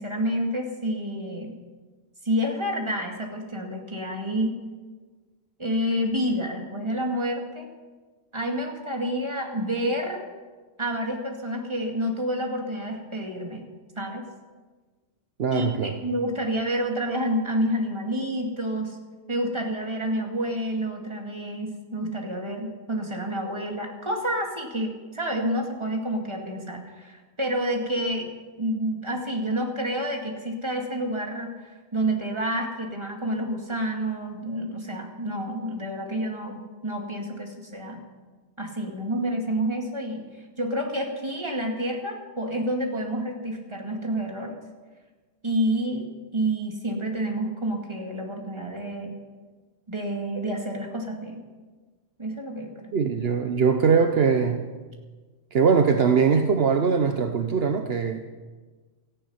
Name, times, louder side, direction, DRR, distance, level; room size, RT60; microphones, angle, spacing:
voice 1, 0.0-1.5 2.2-4.6 5.6-7.7 8.3-10.2 10.8-13.6 14.0-14.2 15.5-19.0 19.3-28.3 28.6-38.0 38.6-40.2 40.6-44.6 45.4-46.1 46.3-49.2 49.9-51.4 52.2-52.9, equal, 25° right, 1 dB, 2.4 m, -29 dB
voice 2, 15.4-16.0 52.9-54.7 55.5-58.3, right 6 dB, 65° right, 6 dB, 1.1 m, -21 dB
17.5 x 14.5 x 5.7 m, 1.3 s
omnidirectional pair, 1.1 m